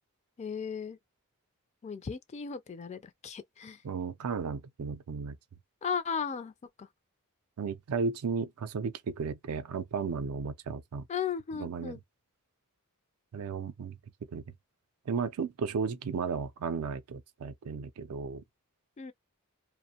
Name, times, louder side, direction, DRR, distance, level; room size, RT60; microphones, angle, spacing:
voice 1, 0.4-1.0 1.8-3.8 5.8-6.5 6.8-6.9 11.1-12.0 19.0-19.1, left 6 dB, 30° left, 0.3 m, -36 dB
voice 2, 3.8-5.4 7.6-11.1 11.5-12.0 13.3-14.0 14.3-14.4 15.1-18.4, right 5 dB, 75° right, 0.4 m, -34 dB
2.5 x 2.1 x 2.7 m
head